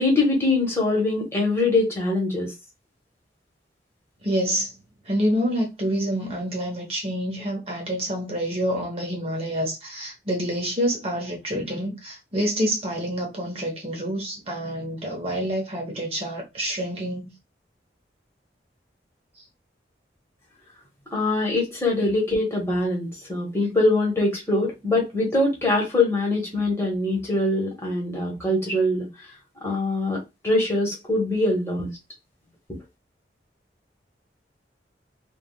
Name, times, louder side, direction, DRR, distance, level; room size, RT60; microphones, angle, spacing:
voice 1, 0.0-2.5 21.1-29.1 29.6-31.9, left 2 dB, 15° left, 0.9 m, -23 dB
voice 2, 4.2-4.7 5.0-17.3, equal, 35° right, 1.0 m, -27 dB
3.4 x 2.2 x 2.3 m
head